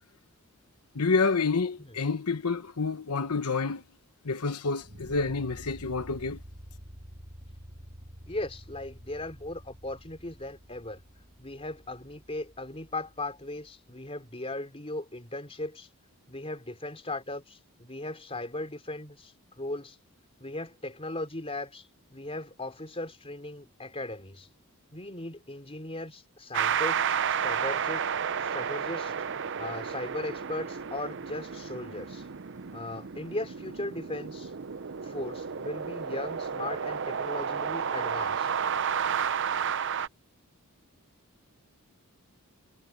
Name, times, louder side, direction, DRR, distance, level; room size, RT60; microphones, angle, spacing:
voice 1, 0.9-3.8 4.2-6.4, left 4 dB, 90° left, 1.0 m, -28 dB
sound 1, 4.8-13.8, equal, 40° right, 5.3 m, -49 dB
voice 2, 8.3-11.0 11.4-15.9 16.3-20.0 20.4-24.5 24.9-28.1 28.4-29.1 29.6-32.3 32.7-34.5 35.0-38.5, left 2 dB, 25° left, 3.7 m, -38 dB
sound 2, 26.5-40.1, right 7 dB, 55° right, 0.7 m, -32 dB
head